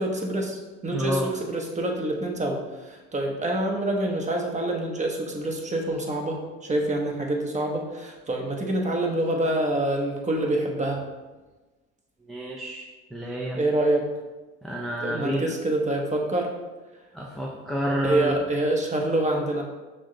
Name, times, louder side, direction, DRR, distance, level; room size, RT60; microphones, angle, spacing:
voice 1, 0.0-11.0 13.6-14.1 15.0-16.5 18.0-19.6, right 1 dB, 15° right, 1 dB, 0.9 m, -26 dB
voice 2, 0.9-1.3 12.3-12.8 13.1-13.6 14.6-15.5 17.1-18.4, equal, ahead, -3 dB, 0.5 m, -29 dB
6.0 x 2.3 x 3.8 m, 1.2 s
hypercardioid pair, 70°, 44 cm